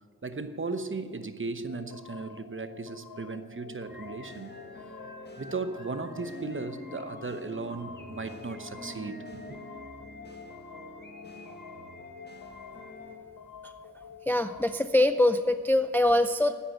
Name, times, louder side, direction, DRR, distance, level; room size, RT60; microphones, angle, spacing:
voice 1, 0.2-4.6 5.4-9.6, right 3 dB, 30° right, 9 dB, 1.0 m, -36 dB
sound 1, 1.7-15.4, left 6 dB, 60° left, 0.7 m, -48 dB
sound 2, 3.9-13.2, left 1 dB, 25° left, 1.6 m, -46 dB
voice 2, 14.3-16.5, left 1 dB, 5° left, 10 dB, 0.4 m, -23 dB
9.5 x 8.4 x 8.7 m, 2.2 s
cardioid pair, 55°, 38 cm